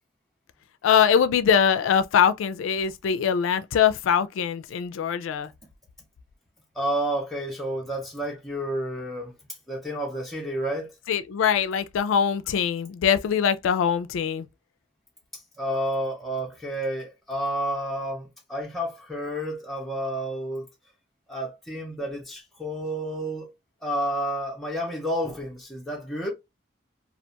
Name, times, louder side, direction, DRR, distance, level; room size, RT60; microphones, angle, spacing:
voice 1, 0.8-5.5 11.1-14.5, left 7 dB, 85° left, 0.3 m, -22 dB
voice 2, 6.8-9.3 9.7-10.9 15.6-20.6 21.3-23.5 23.8-26.3, equal, ahead, 0.5 m, -30 dB
2.4 x 2.2 x 2.7 m
head